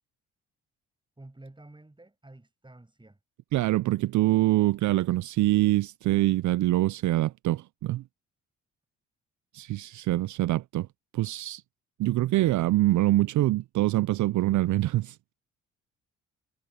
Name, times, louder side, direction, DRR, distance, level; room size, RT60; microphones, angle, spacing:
voice 1, 1.2-3.2, right 2 dB, 15° right, 6.2 m, -50 dB
voice 2, 3.5-8.0 9.5-10.9 11.1-11.6 12.0-15.2, right 16 dB, 65° right, 0.5 m, -24 dB
supercardioid pair, 55°, 33 cm